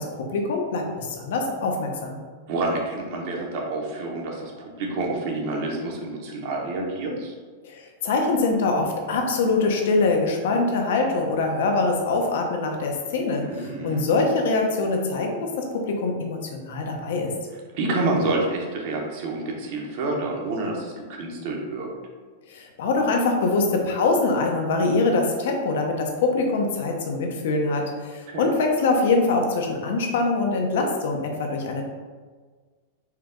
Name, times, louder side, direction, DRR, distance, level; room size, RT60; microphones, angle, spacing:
voice 1, 0.0-2.2 7.6-17.3 22.5-31.8, left 3 dB, 70° left, 2 dB, 0.7 m, -24 dB
voice 2, 2.5-7.3 13.4-14.0 17.7-21.9 28.3-28.5, right 2 dB, 45° right, 0 dB, 0.7 m, -28 dB
4.4 x 2.3 x 3.7 m, 1.5 s
supercardioid pair, 165°, 0 cm